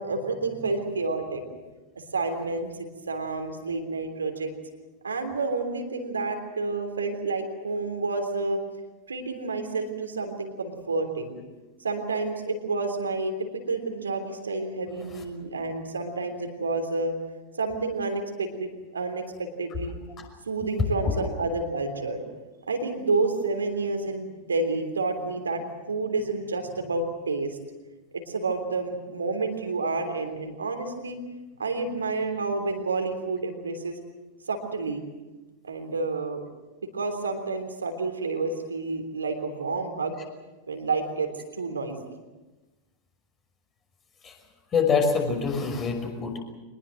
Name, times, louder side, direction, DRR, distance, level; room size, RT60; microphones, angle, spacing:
voice 1, 0.0-1.5 2.1-4.5 5.0-8.6 9.1-11.4 11.8-17.1 17.6-20.0 20.5-22.2 22.7-25.6 25.9-27.6 28.1-31.2 31.6-34.0 34.5-35.0 35.6-36.4 36.9-40.2 40.7-42.0, right 3 dB, 75° right, 5 dB, 3.4 m, -29 dB
voice 2, 44.7-46.4, left 5 dB, 25° left, 3 dB, 5.8 m, -25 dB
24.5 x 20.5 x 7.8 m, 1.1 s
figure-of-eight pair, 90°, 0 cm